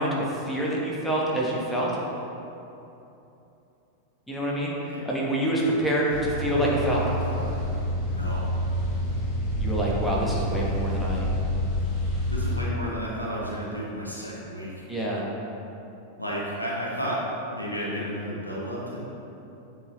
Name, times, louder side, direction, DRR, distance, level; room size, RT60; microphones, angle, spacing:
voice 1, 0.0-1.9 4.3-4.7 5.0-7.0 9.6-11.3 14.9-15.2, right 1 dB, 5° left, -5 dB, 1.1 m, -26 dB
voice 2, 6.0-6.5 7.2-7.6 8.1-8.4 12.3-14.8 16.2-17.2 17.5-19.0, equal, 85° left, -5 dB, 1.0 m, -33 dB
sound 1, 6.1-12.6, equal, 35° left, 1.3 m, -28 dB
8.5 x 3.8 x 3.0 m, 2.9 s
figure-of-eight pair, 90°, 0 cm